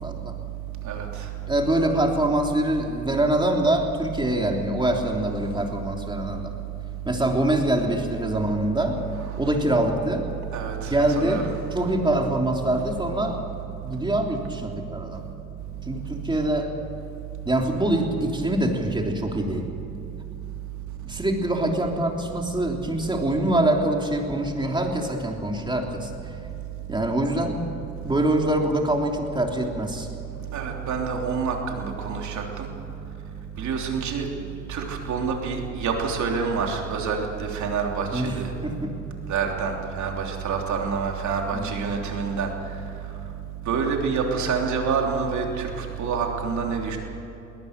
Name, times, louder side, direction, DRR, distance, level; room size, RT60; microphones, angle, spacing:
voice 1, 0.0-0.3 1.5-6.5 7.0-9.0 9.4-10.3 10.9-13.4 13.8-15.2 15.9-16.7 17.4-19.7 21.0-26.1 26.9-27.6 28.0-30.1 38.1-38.3 38.6-38.9 41.5-41.7, right 1 dB, 15° right, 1 dB, 3.2 m, -24 dB
voice 2, 10.5-11.5 30.5-32.7 33.6-34.3 34.7-38.5 39.3-42.5 43.7-47.0, right 5 dB, 70° right, 1 dB, 3.4 m, -27 dB
22.0 x 18.0 x 6.7 m, 3.0 s
cardioid pair, 90°, 30 cm